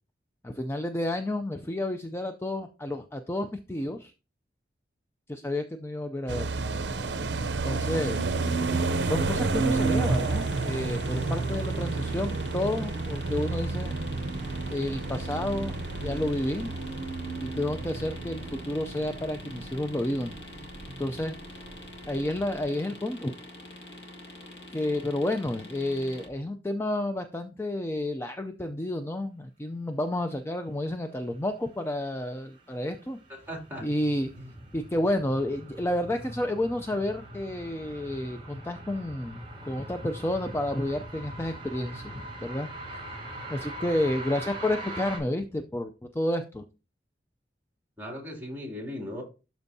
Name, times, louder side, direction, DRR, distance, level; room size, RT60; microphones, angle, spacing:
voice 1, 0.4-4.1 5.3-6.5 7.5-8.2 9.0-13.9 14.7-15.7 16.0-16.7 17.4-20.3 21.0-21.4 22.1-23.3 24.7-33.2 33.8-34.3 34.7-43.0 43.5-46.6, left 1 dB, 15° left, 0.4 m, -30 dB
sound 1, 6.3-21.4 21.7-21.8 22.0-22.6, right 3 dB, 70° right, 0.6 m, -30 dB
sound 2, 8.0-26.3, left 1 dB, 75° left, 1.8 m, -45 dB
sound 3, 32.4-45.2, right 1 dB, 30° right, 4.2 m, -42 dB
voice 2, 33.5-33.9 34.4-34.5 48.0-49.2, equal, 10° right, 2.6 m, -37 dB
12.0 x 4.5 x 2.7 m
head